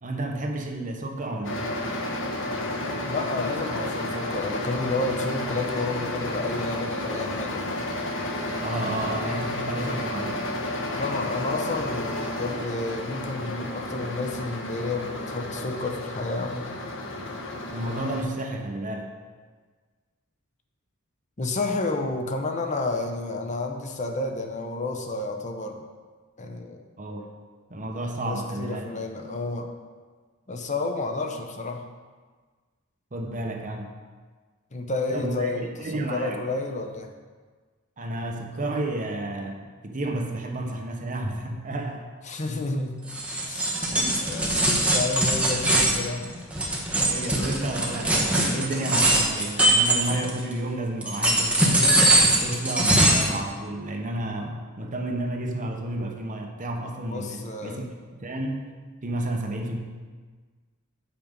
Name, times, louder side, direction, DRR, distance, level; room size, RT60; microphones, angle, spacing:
voice 1, 0.0-1.7 8.6-10.4 17.7-19.1 27.0-27.3 27.7-28.8 33.1-33.9 35.1-36.4 38.0-42.0 43.6-44.3 47.1-57.9 58.2-58.7 59.0-59.8, right 1 dB, 40° right, 2 dB, 1.0 m, -31 dB
sound 1, 1.4-18.2, left 1 dB, 60° left, 1.4 m, -31 dB
voice 2, 3.1-7.8 11.0-16.7 21.4-25.8 26.4-26.8 28.2-29.7 30.5-31.8 34.7-35.7 36.1-37.1 42.3-43.0 43.5-43.8 44.2-46.4 57.1-57.8, left 2 dB, 35° left, 3 dB, 0.8 m, -30 dB
sound 2, 43.1-50.5 51.0-53.3, right 1 dB, 5° right, 1.2 m, -22 dB
8.6 x 5.9 x 5.2 m, 1.4 s
head